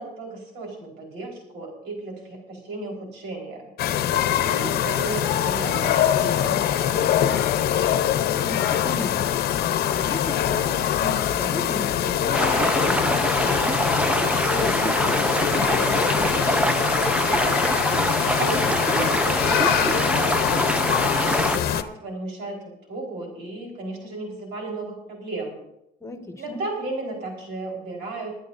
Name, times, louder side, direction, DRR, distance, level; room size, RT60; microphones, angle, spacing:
voice 1, 0.0-3.7 4.1-7.7 18.3-25.6 26.4-28.3, right 2 dB, 90° right, 0 dB, 4.3 m, -34 dB
sound 1, 3.8-21.8, left 10 dB, 65° left, 0.8 m, -23 dB
voice 2, 8.3-9.3 9.9-13.8 14.1-16.8 26.0-26.6, left 2 dB, 15° left, 4 dB, 1.6 m, -35 dB
sound 2, 12.3-21.6, right 1 dB, 5° right, 0.5 m, -24 dB
26.5 x 10.0 x 2.6 m, 0.83 s
cardioid pair, 110°, 17 cm